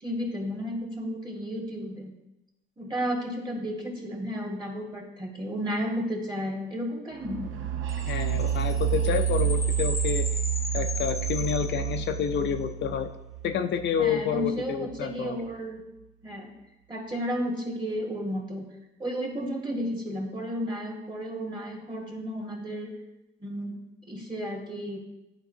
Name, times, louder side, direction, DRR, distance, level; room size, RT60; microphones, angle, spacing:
voice 1, 0.0-2.1 2.8-7.5 14.0-15.7 16.2-16.5 16.9-18.6 19.0-22.9 23.4-23.8 24.1-25.0, equal, 25° right, -1 dB, 1.7 m, -33 dB
sound 1, 7.2-14.9, right 10 dB, 80° right, 0.6 m, -29 dB
sound 2, 7.9-12.5, left 3 dB, 15° left, 0.5 m, -37 dB
voice 2, 8.1-10.3 10.7-13.1 13.4-15.4, left 8 dB, 65° left, 7 dB, 0.5 m, -29 dB
10.0 x 4.6 x 2.7 m, 0.96 s
cardioid pair, 90°, 20 cm